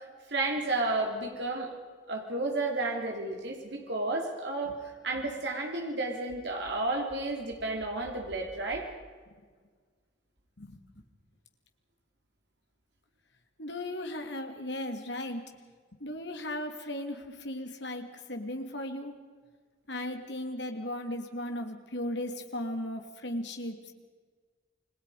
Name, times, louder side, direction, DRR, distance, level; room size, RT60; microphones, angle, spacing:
voice 1, 0.0-1.7 2.1-4.8 5.0-8.9, right 2 dB, 60° right, 1 dB, 3.4 m, -32 dB
voice 2, 10.6-11.0 13.6-15.5 16.0-19.2 19.9-23.9, left 1 dB, 60° left, 5 dB, 2.8 m, -36 dB
29.5 x 22.0 x 5.0 m, 1.5 s
head